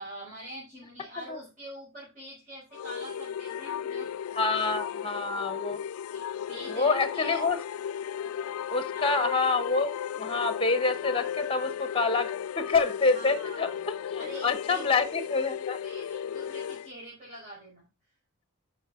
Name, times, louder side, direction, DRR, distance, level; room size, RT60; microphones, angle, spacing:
voice 1, 0.0-4.1 4.8-5.0 6.1-7.4 8.9-9.2 13.1-13.7 14.1-15.0 15.6-17.8, right 1 dB, 35° right, 4.7 m, -44 dB
sound 1, 2.7-16.9, left 9 dB, 90° left, 0.3 m, -35 dB
voice 2, 4.3-5.8 6.7-7.6 8.7-9.9 10.2-15.8, left 4 dB, 25° left, 1.0 m, -27 dB
11.5 x 5.4 x 3.7 m
head